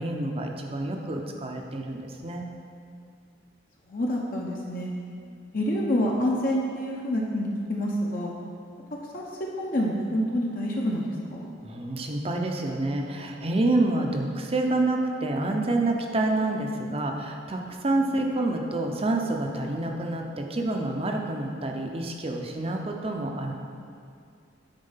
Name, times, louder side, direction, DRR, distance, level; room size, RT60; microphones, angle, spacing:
voice 1, 0.0-2.5 11.6-23.5, right 2 dB, 30° right, 2 dB, 0.7 m, -28 dB
voice 2, 3.9-4.9 5.5-8.3 9.1-9.3 9.6-11.5, equal, 50° left, -2 dB, 0.8 m, -27 dB
9.0 x 4.4 x 5.7 m, 2.4 s
head